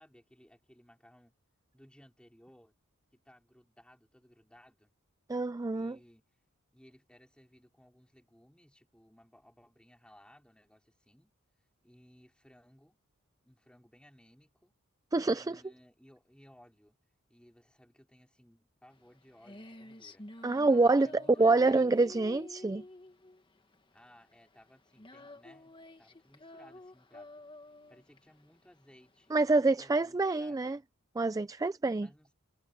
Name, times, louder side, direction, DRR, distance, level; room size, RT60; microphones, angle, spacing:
voice 1, 0.0-1.3 1.7-2.7 3.1-4.9 5.7-6.2 6.7-11.3 11.8-13.0 13.4-14.7 15.3-17.0 17.3-22.3 23.9-27.4 27.9-30.8 32.0-32.3, equal, 5° left, 5.0 m, -61 dB
voice 2, 5.3-6.0 15.1-15.6 20.4-22.8 29.3-30.8 31.2-32.1, right 3 dB, 15° right, 0.4 m, -26 dB
Female singing, 18.9-29.9, left 2 dB, 25° left, 1.7 m, -50 dB
head